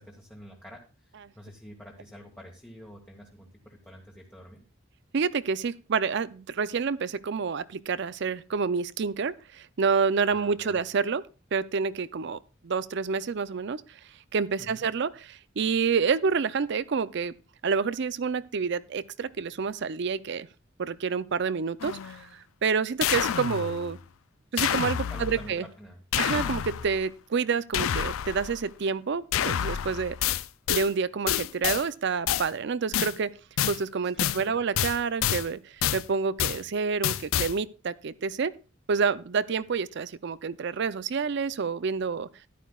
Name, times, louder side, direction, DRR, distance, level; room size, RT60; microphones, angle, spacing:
voice 1, 0.0-4.6 10.3-10.8 14.6-14.9 24.9-26.0 34.0-34.6, equal, 10° left, 1.5 m, -48 dB
voice 2, 5.1-11.2 11.5-12.4 12.6-13.8 14.3-17.3 17.6-20.5 20.8-24.0 24.5-25.7 26.2-30.4 30.7-33.3 33.7-38.5 38.9-42.3, right 5 dB, 60° right, 0.5 m, -28 dB
sound 1, 21.8-22.2 23.0-24.0 24.6-25.5 26.1-27.1 27.7-28.6 29.3-30.9 31.3-31.8 32.3-32.5 32.9-33.2 33.6-33.8 34.2-34.4 34.7-35.5 35.8-36.0 36.4-36.6 37.0-37.6, left 10 dB, 90° left, 0.4 m, -28 dB
13.5 x 11.0 x 2.4 m
head